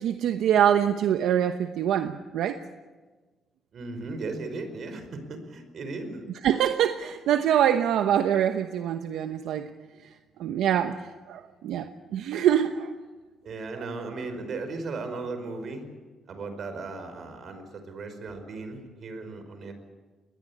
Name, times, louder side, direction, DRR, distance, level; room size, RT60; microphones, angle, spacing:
voice 1, 0.0-2.6 6.4-9.7 10.4-12.9 13.8-13.9, right 10 dB, 85° right, 8 dB, 1.0 m, -24 dB
voice 2, 3.7-6.3 13.4-15.8 16.3-19.7, right 3 dB, 55° right, 9 dB, 5.0 m, -36 dB
22.0 x 19.5 x 8.7 m, 1.3 s
cardioid pair, 90°, 0 cm